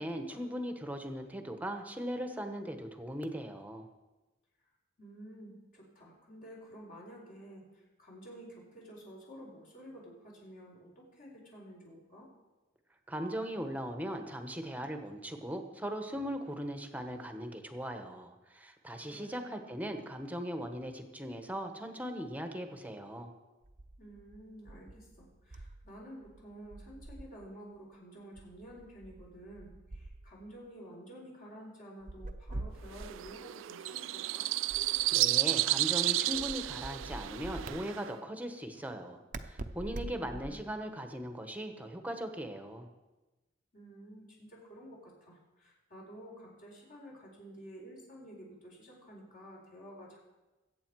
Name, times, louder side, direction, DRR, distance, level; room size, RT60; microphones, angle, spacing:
voice 1, 0.0-3.9 13.1-23.3 35.1-39.2 39.4-42.9, equal, 10° right, 6 dB, 1.2 m, -39 dB
voice 2, 5.0-12.3 19.1-19.6 24.0-34.5 40.1-40.7 43.7-50.2, right 1 dB, 45° left, -3 dB, 4.3 m, -51 dB
sound 1, 23.6-26.0 26.2-27.4 28.4-30.5 32.0-33.4 34.7-35.7 36.3-37.8 39.3-40.8, right 2 dB, 40° right, 0.7 m, -45 dB
sound 2, 32.9-38.1, right 17 dB, 80° right, 0.3 m, -32 dB
22.0 x 8.5 x 4.7 m, 1.1 s
head